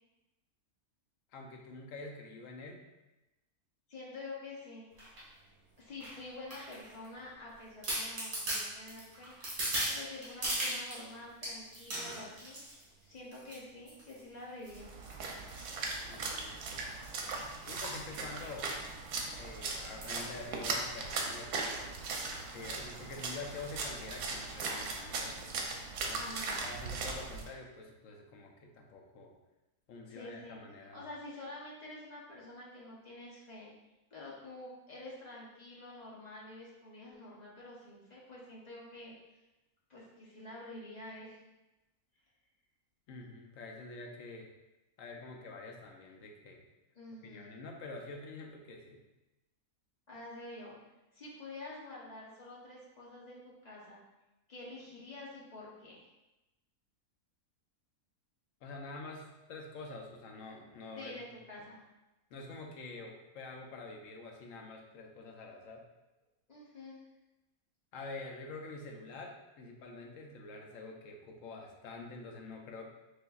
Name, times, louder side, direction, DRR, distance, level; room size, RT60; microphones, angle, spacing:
voice 1, 1.3-2.9 16.0-16.9 17.7-18.7 19.4-21.9 22.5-25.6 26.0-29.3 29.9-31.1 43.1-44.5 45.0-46.6 47.2-49.0 58.6-61.1 62.3-65.8 67.9-72.9, left 3 dB, 65° left, 1 dB, 0.9 m, -47 dB
voice 2, 3.9-4.9 5.4-5.5 5.8-9.3 9.6-12.6 13.0-14.9 26.1-26.6 30.1-33.7 34.1-39.1 39.9-41.4 47.0-47.5 50.1-50.8 51.1-54.0 54.5-56.1 61.0-61.8 66.5-67.0, left 2 dB, 35° left, -6 dB, 0.8 m, -48 dB
sound 1, 5.0-5.2 6.0-7.1 7.5-7.6 7.8-11.0 11.4-12.8 13.3-13.6 13.9-14.2 14.6-16.4 16.9-17.2 17.4-17.5 17.7-17.9 18.4-18.6 18.9-19.0 20.0-20.2 20.8-20.9, right 1 dB, 65° right, 2.1 m, -38 dB
Splash splatter, 14.7-27.5, right 3 dB, 90° right, 1.2 m, -39 dB
6.3 x 2.6 x 2.3 m, 1.0 s
omnidirectional pair, 1.6 m